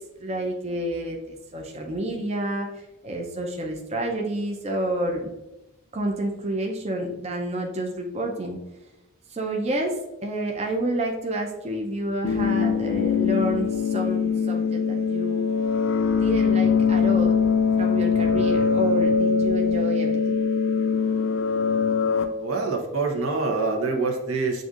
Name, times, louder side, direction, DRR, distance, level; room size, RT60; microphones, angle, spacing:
voice 1, 0.2-5.3 5.9-8.6 9.3-15.4 16.2-17.4 17.8-20.4, right 1 dB, 30° right, 0 dB, 0.5 m, -29 dB
sound 1, 12.2-22.2, left 6 dB, 70° left, 0.4 m, -22 dB
voice 2, 22.4-24.6, right 3 dB, 80° right, 2 dB, 0.8 m, -25 dB
7.8 x 2.6 x 2.4 m, 0.96 s
head